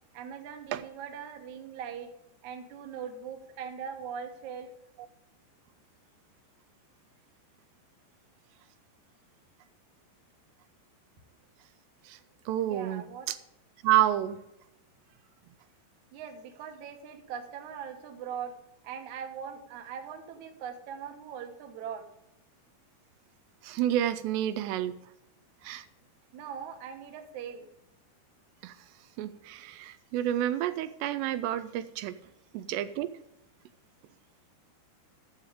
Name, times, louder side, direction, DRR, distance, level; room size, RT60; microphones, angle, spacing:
voice 1, 0.1-2.1 2.4-4.7 12.6-13.3 16.1-18.5 18.8-22.0 26.3-27.7, right 7 dB, 65° right, 4 dB, 2.1 m, -41 dB
voice 2, 12.5-13.4 13.8-14.4 23.6-25.1 25.6-25.9 28.6-28.8 29.2-32.2 32.5-33.1, right 12 dB, 85° right, 11 dB, 2.7 m, -29 dB
12.0 x 7.3 x 5.0 m, 0.86 s
omnidirectional pair, 4.9 m